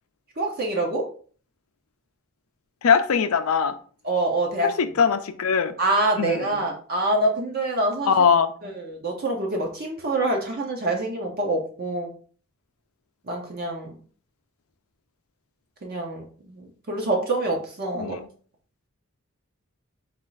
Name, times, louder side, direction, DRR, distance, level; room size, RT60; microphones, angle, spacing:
voice 1, 0.4-1.0 4.0-4.7 5.8-8.1 8.6-12.1 13.3-13.9 15.8-16.6 16.9-18.2, right 2 dB, 45° right, 1 dB, 0.7 m, -25 dB
voice 2, 2.8-3.7 4.6-5.7 6.2-6.6 8.0-8.5 17.9-18.3, left 6 dB, 75° left, 10 dB, 0.5 m, -21 dB
4.5 x 2.5 x 3.9 m, 0.43 s
head